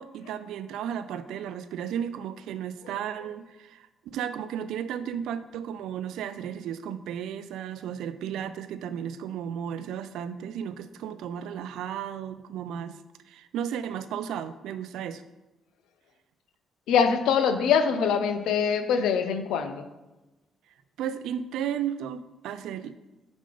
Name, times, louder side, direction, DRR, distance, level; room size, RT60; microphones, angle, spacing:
voice 1, 0.0-3.9 4.1-13.0 13.3-15.2 21.0-23.0, right 9 dB, 85° right, 12 dB, 0.3 m, -34 dB
voice 2, 16.9-19.9, left 7 dB, 85° left, 9 dB, 0.5 m, -23 dB
5.2 x 3.7 x 5.2 m, 1.1 s
cardioid pair, 90°, 0 cm